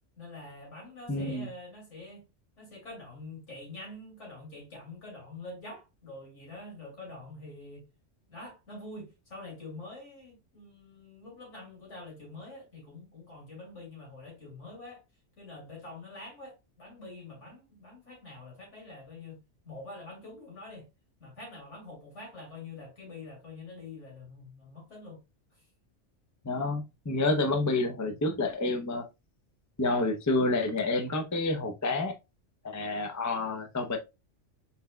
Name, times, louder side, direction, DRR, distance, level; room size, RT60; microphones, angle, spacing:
voice 1, 0.2-2.3 2.6-7.8 8.3-15.0 15.4-20.9 21.2-25.2, left 2 dB, 75° left, 2.9 m, -46 dB
voice 2, 1.1-1.5 26.4-29.1 29.8-32.1 32.6-34.0, left 2 dB, 20° left, 0.5 m, -29 dB
5.7 x 4.1 x 2.2 m
omnidirectional pair, 1.3 m